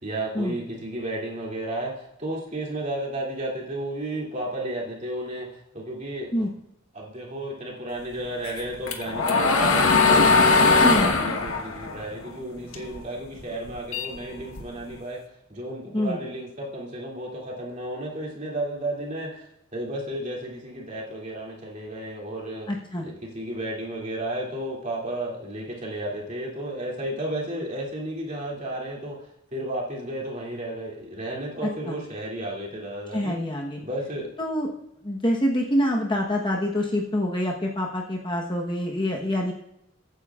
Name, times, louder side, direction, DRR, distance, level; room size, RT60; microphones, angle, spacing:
voice 1, 0.0-6.5 6.9-15.2 15.5-22.7 23.0-33.4 33.8-34.3, right 1 dB, 35° right, -3 dB, 2.7 m, -33 dB
sound 1, 8.5-13.0 13.4-14.9, left 4 dB, 75° left, 1.3 m, -20 dB
voice 2, 22.7-23.0 31.6-32.0 33.1-33.8 34.4-34.7 35.0-39.5, left 1 dB, 20° left, -1 dB, 1.1 m, -26 dB
22.0 x 9.4 x 2.5 m, 0.83 s
head